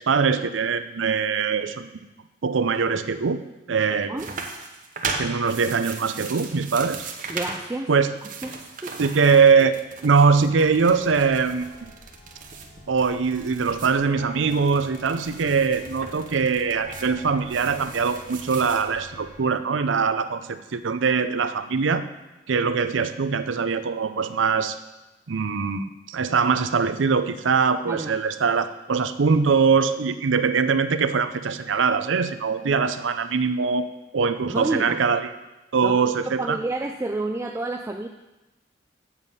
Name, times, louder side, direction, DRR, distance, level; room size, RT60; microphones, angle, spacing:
voice 1, 0.0-2.0 2.4-3.4 3.7-4.1 5.2-7.1 7.9-8.1 9.0-11.6 12.9-22.0 22.5-24.8 25.3-33.9 34.1-35.3 35.7-36.6, right 5 dB, 80° right, 11 dB, 0.5 m, -22 dB
sound 1, 4.2-7.7 8.0-14.0 14.4-18.9, right 4 dB, 45° right, 0.9 m, -37 dB
voice 2, 7.3-7.9 8.4-8.6 8.8-8.9 27.9-28.1 34.5-35.0 35.8-38.1, right 2 dB, 15° right, 4 dB, 0.3 m, -29 dB
sound 2, 10.0-19.4, left 1 dB, 40° left, 0.8 m, -46 dB
8.2 x 7.3 x 5.4 m, 1.0 s
head